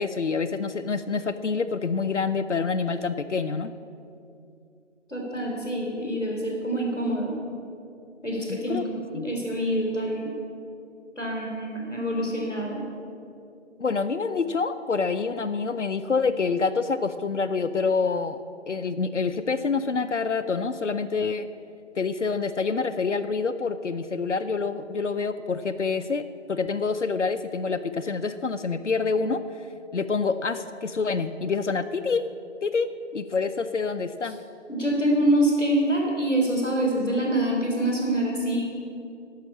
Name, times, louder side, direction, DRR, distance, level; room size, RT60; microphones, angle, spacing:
voice 1, 0.0-3.7 8.5-8.8 9.1-9.3 13.8-18.4 18.7-21.5 22.0-26.2 26.5-29.4 29.9-32.3 32.6-34.4, left 4 dB, 70° left, 10 dB, 0.6 m, -27 dB
voice 2, 5.1-7.4 8.2-8.8 9.1-10.3 11.2-12.8 34.7-38.7, right 1 dB, ahead, -22 dB, 1.9 m, -25 dB
13.5 x 5.7 x 8.6 m, 2.5 s
figure-of-eight pair, 165°, 36 cm